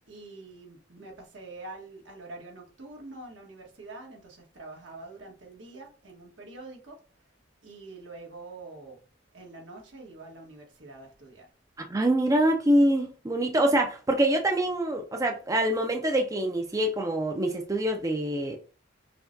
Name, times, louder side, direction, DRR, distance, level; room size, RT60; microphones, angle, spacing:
voice 1, 0.1-7.0 7.6-9.0 9.3-11.5, right 2 dB, 80° right, 1.4 m, -45 dB
voice 2, 11.9-18.6, right 1 dB, 15° right, 0.4 m, -25 dB
5.7 x 2.2 x 2.6 m
head